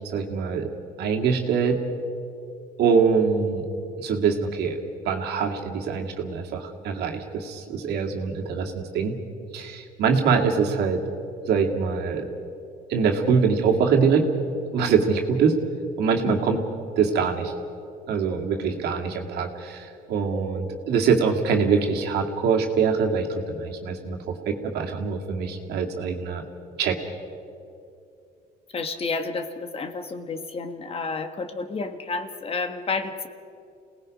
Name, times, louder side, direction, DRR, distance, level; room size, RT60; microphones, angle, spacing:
voice 1, 0.1-0.7 1.0-1.8 2.8-3.6 4.0-9.2 9.5-11.0 11.4-12.3 12.9-14.3 14.7-15.6 16.0-16.6 17.0-17.5 18.1-26.4 26.8-27.0, right 5 dB, 75° right, 2 dB, 2.4 m, -24 dB
voice 2, 16.2-16.6 28.7-33.3, left 4 dB, 35° left, 8 dB, 1.4 m, -30 dB
28.0 x 19.0 x 5.3 m, 2.6 s
cardioid pair, 110°, 17 cm